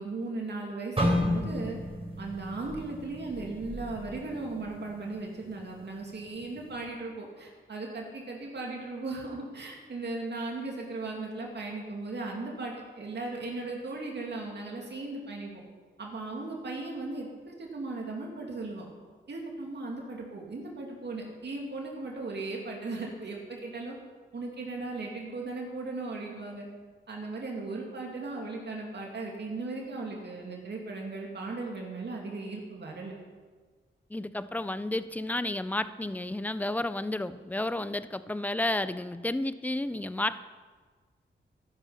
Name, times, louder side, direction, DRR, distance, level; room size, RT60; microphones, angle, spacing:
voice 1, 0.0-1.8 2.2-15.6 16.0-18.9 19.3-24.0 24.3-26.7 27.1-33.1, right 3 dB, 60° right, -1 dB, 2.5 m, -37 dB
sound 1, 1.0-5.0 5.4-5.6 6.3-6.6, left 1 dB, 30° right, 3.8 m, -32 dB
voice 2, 34.1-40.4, left 2 dB, 10° left, 14 dB, 0.5 m, -31 dB
13.0 x 11.0 x 5.7 m, 1.5 s
wide cardioid pair, 100°, 20 cm